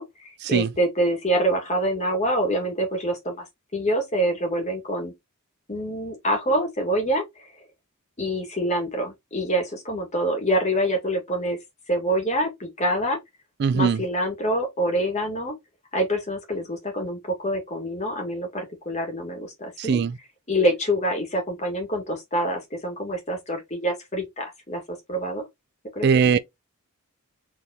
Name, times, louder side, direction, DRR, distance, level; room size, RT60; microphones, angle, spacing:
voice 1, 0.0-3.4 3.7-5.1 5.7-7.2 8.2-11.6 11.9-13.2 13.7-15.5 15.9-20.0 20.5-24.8 25.1-25.5 25.9-26.1, right 1 dB, 30° left, 1.8 m, -26 dB
voice 2, 13.6-14.0 19.8-20.2 26.0-26.4, right 6 dB, 50° right, 0.3 m, -20 dB
4.5 x 3.4 x 2.9 m
head